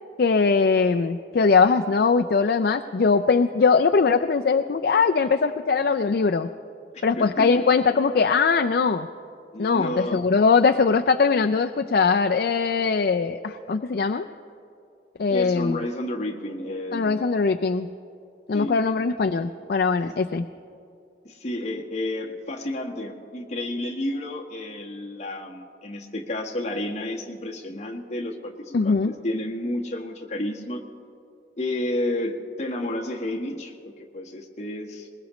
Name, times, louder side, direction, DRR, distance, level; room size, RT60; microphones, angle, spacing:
voice 1, 0.2-6.5 7.0-9.1 9.6-14.3 15.2-15.8 16.9-17.9 18.5-20.4 28.7-29.1, left 4 dB, 60° left, 6 dB, 0.4 m, -21 dB
voice 2, 6.9-7.6 9.5-10.2 15.3-17.2 18.5-18.8 20.0-20.1 21.2-30.8 31.6-35.1, left 1 dB, 40° left, 0 dB, 1.4 m, -31 dB
21.0 x 21.0 x 3.1 m, 2.5 s
head